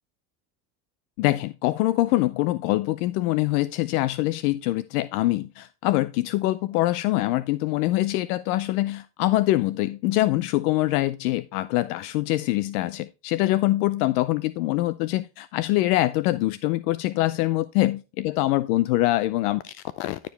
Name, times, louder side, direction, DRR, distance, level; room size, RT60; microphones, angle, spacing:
voice 1, 1.2-20.2, left 17 dB, 80° left, 15 dB, 0.6 m, -24 dB
11.5 x 5.1 x 3.3 m, 0.28 s
supercardioid pair, 110°, 45 cm